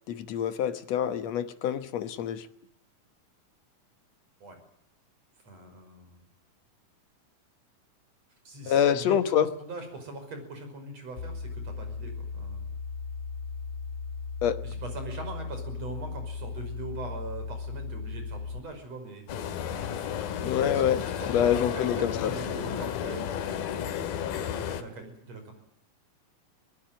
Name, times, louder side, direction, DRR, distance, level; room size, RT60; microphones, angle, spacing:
voice 1, 0.1-2.5 8.7-9.5 14.4-14.6 20.4-22.3, left 9 dB, 60° left, 11 dB, 1.9 m, -26 dB
voice 2, 5.4-6.2 8.4-12.7 14.6-19.5 20.6-23.7 24.6-25.5, right 2 dB, 45° right, 6 dB, 6.6 m, -42 dB
sound 1, 11.2-18.6, left 5 dB, 40° left, 1.3 m, -37 dB
sound 2, 19.3-24.8, left 8 dB, 85° left, 3.4 m, -32 dB
24.0 x 19.0 x 9.1 m, 0.76 s
omnidirectional pair, 4.1 m